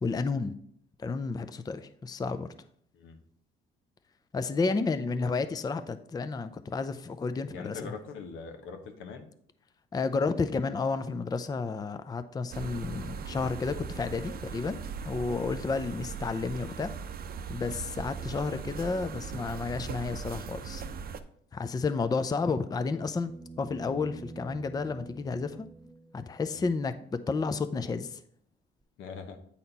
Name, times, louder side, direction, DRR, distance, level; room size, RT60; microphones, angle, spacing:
voice 1, 0.0-0.6 1.0-2.5 4.3-7.9 9.9-14.8 15.0-16.9 17.5-20.8 21.5-25.7 26.1-28.2, left 4 dB, 20° left, 10 dB, 0.4 m, -31 dB
voice 2, 7.5-9.3 15.5-15.6 26.5-26.7 29.0-29.4, left 5 dB, 85° left, 6 dB, 1.1 m, -42 dB
sound 1, 12.5-21.2, right 6 dB, 50° right, 0.6 m, -39 dB
sound 2, 22.4-26.4 28.8-28.9, right 3 dB, 15° right, 0.9 m, -47 dB
8.6 x 4.2 x 4.0 m, 0.66 s
cardioid pair, 90°, 20 cm